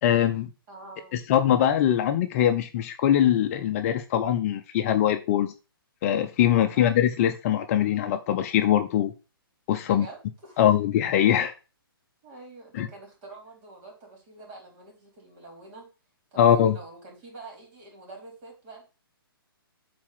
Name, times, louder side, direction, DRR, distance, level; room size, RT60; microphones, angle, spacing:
voice 1, 0.0-0.5 1.1-5.5 6.0-9.1 9.7-10.1 10.6-11.5 12.7-12.9 16.4-16.8, left 10 dB, 35° left, 7 dB, 0.8 m, -22 dB
voice 2, 0.7-1.2 6.6-6.9 9.8-10.6 12.2-15.9 16.3-18.8, right 2 dB, 35° right, 0 dB, 4.6 m, -46 dB
7.3 x 4.3 x 6.0 m, 0.32 s
figure-of-eight pair, 135°, 13 cm